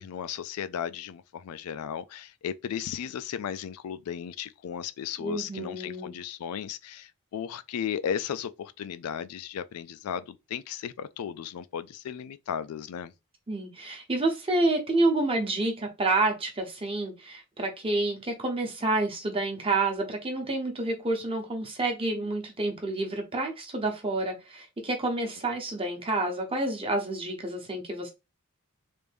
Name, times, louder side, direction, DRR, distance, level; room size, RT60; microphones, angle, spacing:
voice 1, 0.0-13.1, left 8 dB, 90° left, 0.3 m, -35 dB
voice 2, 5.2-6.1 13.5-28.1, right 2 dB, 25° right, 0.8 m, -29 dB
3.3 x 2.6 x 3.3 m
head